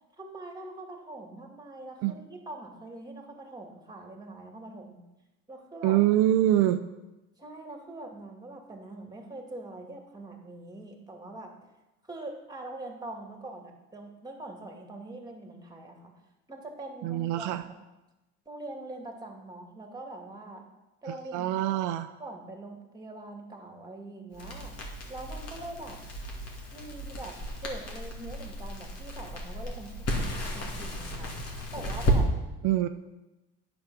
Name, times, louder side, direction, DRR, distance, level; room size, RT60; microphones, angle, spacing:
voice 1, 0.2-5.0 5.5-6.0 7.4-11.5 12.1-16.1 16.5-17.7 18.5-20.7 21.0-21.8 22.2-24.7 25.1-26.0 26.7-27.4 27.6-31.3 31.7-32.3, right 2 dB, 15° right, 2 dB, 2.3 m, -43 dB
voice 2, 5.8-6.8 17.0-17.6 21.3-22.1 32.6-32.9, right 13 dB, 80° right, 8 dB, 0.6 m, -24 dB
Crackle, 24.3-32.2, equal, 55° left, 2.5 m, -33 dB
8.7 x 6.2 x 6.2 m, 1.0 s
supercardioid pair, 85°, 30 cm